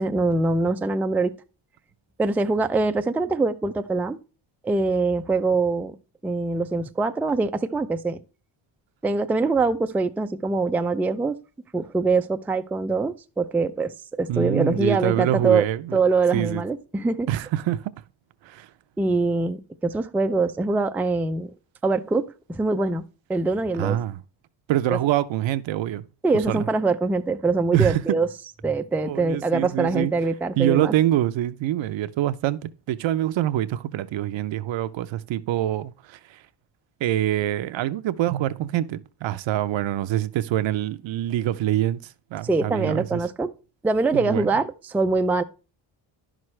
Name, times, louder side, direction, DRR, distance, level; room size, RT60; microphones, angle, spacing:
voice 1, 0.0-1.3 2.2-4.2 4.6-5.9 6.2-8.2 9.0-11.4 11.7-15.6 15.9-17.3 19.0-21.5 21.8-23.0 23.3-24.0 24.9-25.0 26.2-28.3 28.6-30.9 42.4-43.5 43.8-45.4, right 3 dB, 5° right, 0.3 m, -23 dB
voice 2, 14.3-16.0 16.3-16.6 17.3-17.9 18.4-18.7 23.8-24.2 24.7-26.0 26.5-26.7 27.7-28.0 29.0-30.1 30.6-36.4 37.0-43.2 44.1-44.5, right 13 dB, 70° right, 0.7 m, -25 dB
10.5 x 6.2 x 3.2 m
cardioid pair, 90°, 48 cm